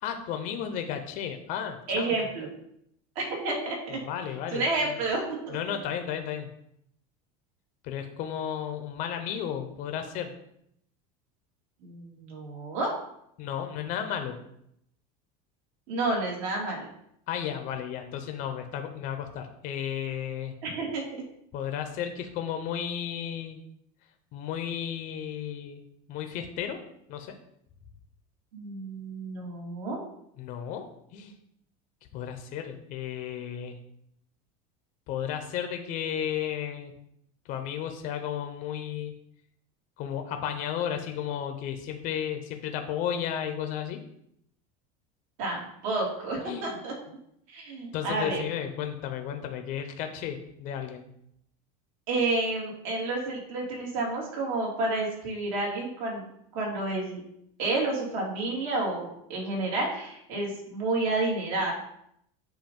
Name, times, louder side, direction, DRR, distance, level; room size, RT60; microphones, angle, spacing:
voice 1, 0.0-2.2 3.9-5.0 5.5-6.5 7.8-10.3 13.4-14.4 17.3-20.5 21.5-23.6 24.3-25.8 26.1-26.8 27.1-27.4 30.4-30.8 31.1-31.3 32.1-33.8 35.1-36.9 37.5-39.1 40.0-44.0 46.4-46.8 47.9-51.1, left 9 dB, 45° left, 6 dB, 0.6 m, -33 dB
voice 2, 1.9-2.5 3.2-4.0 4.5-5.6 11.8-12.9 15.9-16.9 20.6-21.0 28.5-30.0 45.4-46.9 47.5-48.4 52.1-56.3 56.5-57.2 57.6-61.7, right 2 dB, 65° right, -2 dB, 2.3 m, -30 dB
7.8 x 2.6 x 5.2 m, 0.73 s
cardioid pair, 160°, 19 cm